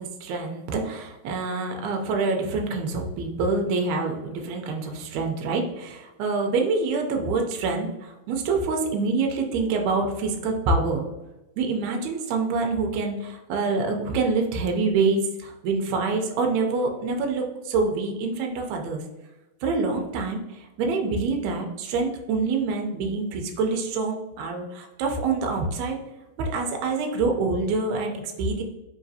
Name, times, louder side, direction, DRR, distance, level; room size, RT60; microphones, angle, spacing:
voice 1, 0.0-11.1 11.6-19.0 19.6-26.0 26.4-28.6, right 3 dB, 75° right, 2 dB, 1.8 m, -26 dB
4.9 x 2.9 x 2.6 m, 1.0 s
omnidirectional pair, 3.5 m